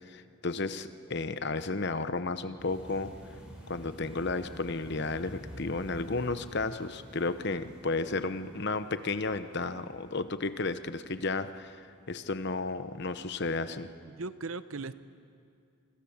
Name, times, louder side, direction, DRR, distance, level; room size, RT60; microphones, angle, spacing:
voice 1, 0.1-3.1 3.7-13.9, left 3 dB, 50° left, 11 dB, 0.9 m, -33 dB
sound 1, 2.6-11.6 12.2-12.4 12.7-12.8, equal, 5° right, 5.5 m, -49 dB
voice 2, 14.1-14.9, right 3 dB, 70° right, 13 dB, 0.8 m, -38 dB
27.0 x 25.5 x 7.2 m, 2.3 s
head